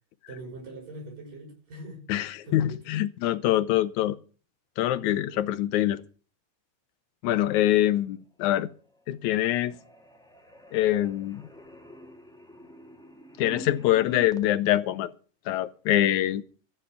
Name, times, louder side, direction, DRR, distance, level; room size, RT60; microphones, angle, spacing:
voice 1, 0.3-2.1 2.4-2.9 5.0-5.5 7.5-7.8, right 2 dB, 75° right, 7.4 m, -43 dB
voice 2, 2.1-4.2 4.8-6.0 7.2-8.7 9.1-9.8 10.7-11.4 13.4-15.1 15.5-16.4, left 13 dB, 70° left, 2.0 m, -24 dB
sound 1, 8.7-9.1 9.4-14.5, equal, 5° left, 0.6 m, -46 dB
14.5 x 7.3 x 8.4 m
omnidirectional pair, 3.9 m